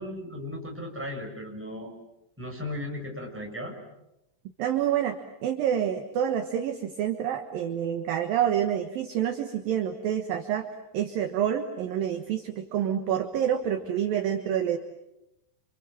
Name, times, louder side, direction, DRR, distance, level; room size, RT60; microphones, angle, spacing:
voice 1, 0.0-1.9 2.4-3.7, left 1 dB, ahead, 0 dB, 6.2 m, -36 dB
voice 2, 4.6-5.2 5.4-10.7 10.9-14.8, right 9 dB, 65° right, 6 dB, 2.6 m, -27 dB
28.5 x 27.5 x 7.6 m, 0.89 s
omnidirectional pair, 5.4 m